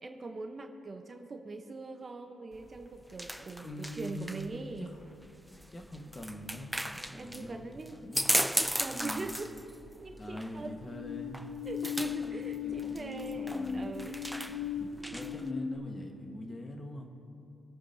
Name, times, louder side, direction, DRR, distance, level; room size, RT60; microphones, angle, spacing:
voice 1, 0.0-5.0 7.0-9.5 10.0-10.9 11.6-14.2, right 3 dB, 30° right, 5 dB, 0.9 m, -42 dB
sound 1, 2.5-15.5, equal, ahead, 0.3 m, -37 dB
voice 2, 3.4-5.0 5.7-6.7 7.1-8.3 8.9-9.4 10.2-11.4 12.2-14.1 14.5-17.1, left 1 dB, 25° left, 3 dB, 1.4 m, -44 dB
sound 2, 10.9-15.8, left 7 dB, 65° left, 1.9 m, -37 dB
25.0 x 8.8 x 2.7 m, 2.7 s
cardioid pair, 90°, 0 cm